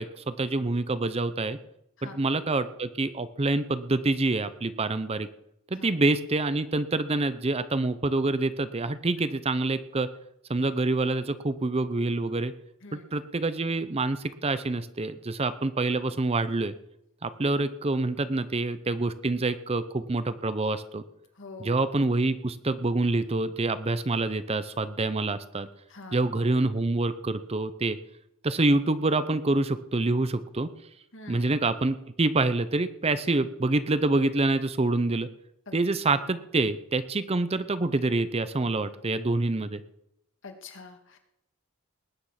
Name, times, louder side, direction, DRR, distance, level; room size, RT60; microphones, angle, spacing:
voice 1, 0.0-1.6 2.0-5.3 5.7-10.1 10.5-12.5 12.9-16.7 17.2-21.0 21.6-25.7 26.1-28.0 28.4-30.7 31.3-35.3 35.7-39.8, right 2 dB, 30° right, 13 dB, 0.6 m, -26 dB
voice 2, 21.3-21.8 25.9-26.3 31.1-31.5 35.7-35.8 40.4-41.2, left 3 dB, 60° left, 5 dB, 2.2 m, -45 dB
19.5 x 9.5 x 5.8 m, 0.80 s
head